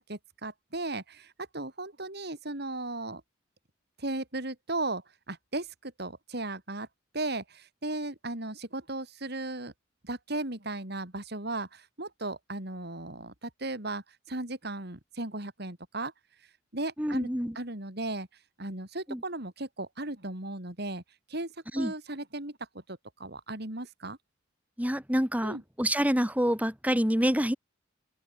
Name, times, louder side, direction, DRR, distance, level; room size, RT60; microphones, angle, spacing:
voice 1, 0.0-3.2 4.0-6.9 7.1-9.7 10.0-16.1 16.7-17.3 17.5-18.3 18.6-21.0 21.3-21.5 21.8-22.6 22.9-24.2 25.4-25.6, right 2 dB, 55° right, 4.5 m, -36 dB
voice 2, 17.0-17.6 19.1-19.2 21.7-21.9 24.8-27.6, equal, 10° right, 4.6 m, -27 dB
open air
head